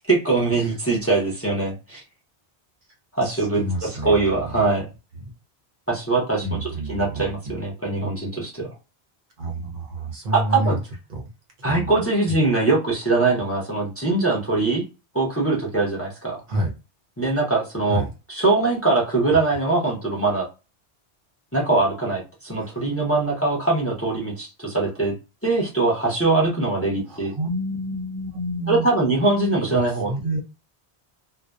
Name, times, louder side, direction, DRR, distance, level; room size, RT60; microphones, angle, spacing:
voice 1, 0.1-2.0 3.1-3.6 4.0-4.9 5.9-8.7 10.3-10.8 11.6-14.8 15.1-16.4 17.2-18.0 18.3-20.5 21.5-25.1 25.4-27.3 28.7-30.1, right 3 dB, 15° left, 0.6 m, -22 dB
voice 2, 3.2-4.6 6.4-7.6 9.4-10.8 11.1-11.2 11.6-12.0 12.3-12.4 16.5-16.7 17.9-18.1 22.5-22.9 27.0-28.9 29.7-30.4, right 1 dB, 55° right, 0.7 m, -29 dB
2.6 x 2.1 x 2.2 m
omnidirectional pair, 1.1 m